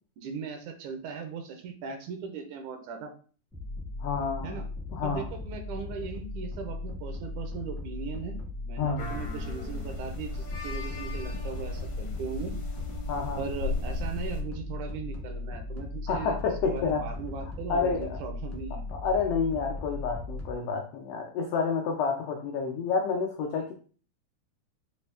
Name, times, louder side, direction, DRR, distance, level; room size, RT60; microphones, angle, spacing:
voice 1, 0.2-3.1 4.4-4.6 5.0-8.4 8.6-12.6 13.4-16.3 16.7-18.8, right 5 dB, 85° right, 5 dB, 2.2 m, -38 dB
sound 1, 3.5-20.5, left 2 dB, ahead, 0.4 m, -38 dB
voice 2, 4.0-4.6 4.9-5.3 8.8-9.1 13.1-13.4 16.1-17.1 17.4-18.2 18.7-23.7, left 5 dB, 90° left, 3 dB, 1.3 m, -29 dB
sound 2, 9.0-14.4, left 3 dB, 70° left, 1.1 m, -36 dB
5.7 x 2.6 x 3.4 m, 0.41 s
omnidirectional pair, 3.4 m